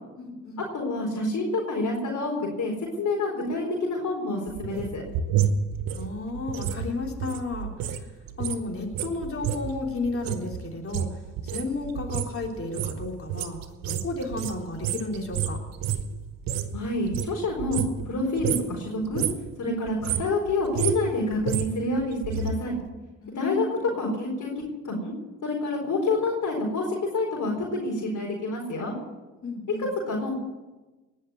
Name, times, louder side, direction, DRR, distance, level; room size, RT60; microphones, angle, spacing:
voice 1, 0.2-0.6 5.9-8.0 8.4-11.1 11.4-13.6 13.8-15.6 23.2-23.9 29.4-29.9, left 3 dB, 40° left, 1 dB, 3.5 m, -33 dB
voice 2, 0.7-5.0 16.7-19.2 19.6-22.2 22.4-22.7 23.3-25.1 25.4-28.9 30.1-30.3, left 2 dB, 60° left, -2 dB, 4.5 m, -28 dB
sound 1, 4.5-8.0 8.3-16.8 17.0-18.1 18.4-18.7 19.0-19.5 19.9-22.5 22.8-22.9, right 9 dB, 75° right, 1.1 m, -30 dB
19.5 x 6.5 x 9.4 m, 1.2 s
hypercardioid pair, 50°, 34 cm